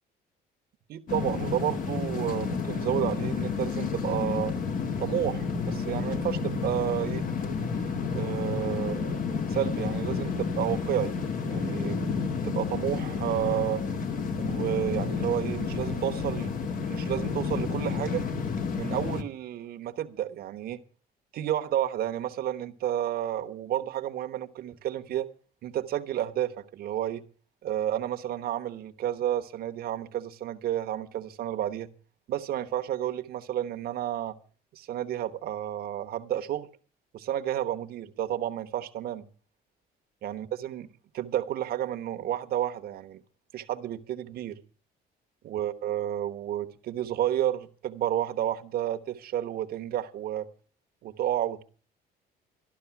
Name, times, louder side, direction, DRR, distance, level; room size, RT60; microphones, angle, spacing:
voice 1, 0.9-4.5 5.0-7.2 8.1-9.2 9.5-11.1 11.5-12.0 12.4-13.9 14.4-16.5 16.8-18.2 18.7-20.8 21.3-25.3 25.6-27.2 27.6-31.9 32.3-34.4 34.7-36.7 37.1-39.2 40.2-40.9 41.1-43.2 43.5-44.6 45.4-50.5 51.0-51.6, right 11 dB, 65° right, 1.1 m, -31 dB
sound 1, 1.1-19.2, left 5 dB, 55° left, 1.5 m, -30 dB
13.0 x 12.0 x 5.9 m
cardioid pair, 110°, 17 cm